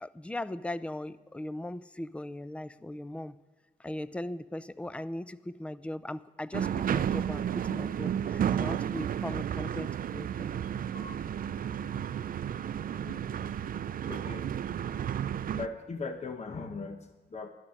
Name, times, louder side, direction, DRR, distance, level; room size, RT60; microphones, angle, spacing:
voice 1, 0.0-3.4 3.8-10.5, left 1 dB, 5° left, 16 dB, 0.4 m, -39 dB
sound 1, 6.5-15.7, right 9 dB, 55° right, 0.4 m, -32 dB
voice 2, 10.9-11.3 11.8-12.1 13.0-13.2 14.1-14.5 15.5-17.5, left 4 dB, 40° left, 6 dB, 1.0 m, -40 dB
12.0 x 11.0 x 6.4 m, 1.2 s
cardioid pair, 100°, 17 cm